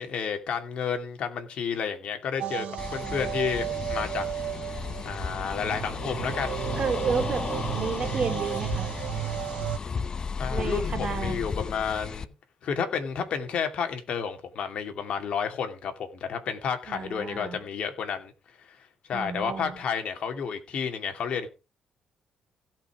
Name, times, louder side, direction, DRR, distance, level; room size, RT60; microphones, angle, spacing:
voice 1, 0.0-4.3 5.0-6.6 10.4-12.3 12.6-18.3 18.6-18.8 19.1-21.5, left 6 dB, 60° left, 2.7 m, -31 dB
sound 1, 2.4-9.8, right 14 dB, 75° right, 0.7 m, -34 dB
sound 2, 2.8-12.2, left 5 dB, 35° left, 0.8 m, -34 dB
voice 2, 6.8-8.9 10.5-11.4 16.9-17.6 19.1-19.8, right 5 dB, 45° right, 2.6 m, -31 dB
16.5 x 5.7 x 4.9 m
cardioid pair, 100°, 2 cm